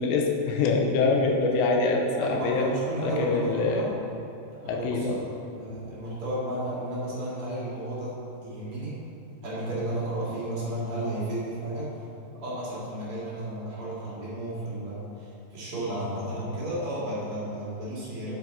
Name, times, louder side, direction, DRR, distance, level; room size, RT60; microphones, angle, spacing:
voice 1, 0.0-2.7 3.0-3.9 4.7-5.2, left 3 dB, 80° left, 1 dB, 2.7 m, -25 dB
voice 2, 2.2-3.9 4.6-5.2 5.5-8.1 8.4-9.0 9.4-12.0 12.3-18.3, right 1 dB, 40° right, -8 dB, 2.1 m, -33 dB
8.8 x 8.2 x 4.1 m, 2.8 s
omnidirectional pair, 5.7 m